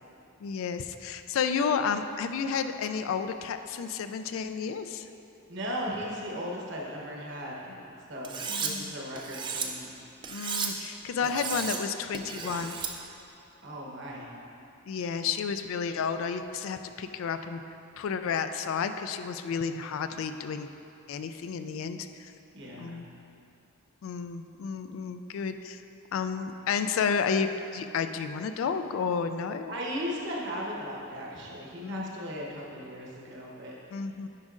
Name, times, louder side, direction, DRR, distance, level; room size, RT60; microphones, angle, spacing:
voice 1, 0.4-5.1 7.7-7.8 8.5-9.0 10.3-12.8 14.9-17.6 18.0-20.7 21.1-22.3 22.8-23.1 24.0-25.8 26.1-29.7 31.8-32.1 33.9-34.3, left 6 dB, 70° left, 9 dB, 0.3 m, -31 dB
voice 2, 5.5-9.9 11.2-11.5 13.6-14.3 22.5-23.0 29.7-33.8, equal, 55° right, -3 dB, 1.0 m, -37 dB
Cutlery silverware, 8.2-8.7 9.2-9.7 10.2-10.7 11.2-11.8 12.1-12.9, right 6 dB, 20° right, 0.3 m, -33 dB
9.7 x 5.2 x 2.5 m, 2.7 s
head